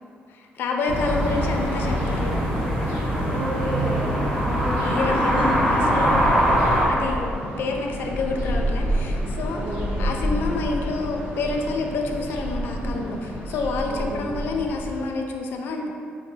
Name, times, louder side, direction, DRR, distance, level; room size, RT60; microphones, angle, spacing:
voice 1, 0.3-2.4 4.7-6.3 6.9-7.3 7.6-9.6 10.0-15.9, left 3 dB, 65° left, 2 dB, 0.3 m, -28 dB
sound 1, 0.9-6.8, equal, ahead, 0.8 m, -22 dB
sound 2, 0.9-15.0, equal, 65° right, 0.9 m, -30 dB
voice 2, 3.3-6.6 6.9-7.3 9.6-10.1 12.8-13.2 13.9-14.4, equal, 35° right, -7 dB, 0.9 m, -31 dB
4.6 x 2.0 x 2.6 m, 2.4 s
cardioid pair, 160°, 4 cm